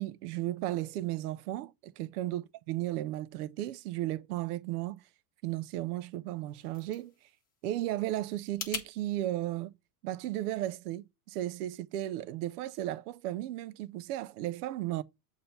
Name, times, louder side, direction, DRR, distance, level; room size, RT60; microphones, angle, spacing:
voice 1, 0.0-5.0 5.4-7.1 7.6-9.7 10.0-15.0, right 14 dB, 80° right, 0.7 m, -35 dB
sound 1, 6.3-8.9, left 5 dB, 20° left, 1.2 m, -43 dB
7.7 x 2.8 x 5.4 m
supercardioid pair, 150°, 45 cm